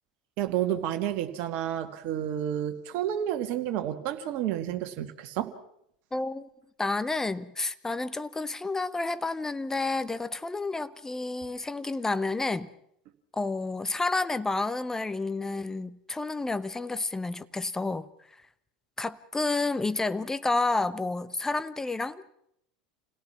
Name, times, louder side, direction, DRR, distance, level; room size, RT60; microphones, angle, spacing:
voice 1, 0.4-5.5, right 11 dB, 50° right, 7 dB, 2.0 m, -30 dB
voice 2, 6.1-6.5 6.8-12.7 13.3-18.1 19.0-22.3, left 3 dB, 10° left, 14 dB, 1.0 m, -30 dB
27.5 x 17.5 x 6.0 m, 0.73 s
figure-of-eight pair, 80°, 4 cm